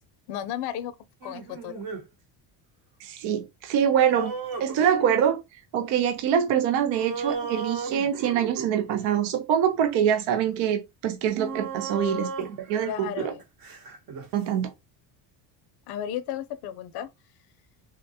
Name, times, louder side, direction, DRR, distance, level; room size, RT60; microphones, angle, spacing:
voice 1, 0.3-0.9 1.2-1.8 12.8-13.4 15.9-17.1, left 10 dB, 60° left, 0.5 m, -33 dB
sound 1, 1.2-2.0 4.1-5.3 6.9-9.1 10.2-10.3 11.4-14.3, right 4 dB, 50° right, 1.0 m, -35 dB
voice 2, 3.0-4.3 4.6-5.4 5.7-13.3 14.3-14.7, right 9 dB, 75° right, 0.6 m, -24 dB
3.7 x 2.1 x 2.7 m
cardioid pair, 125°, 45 cm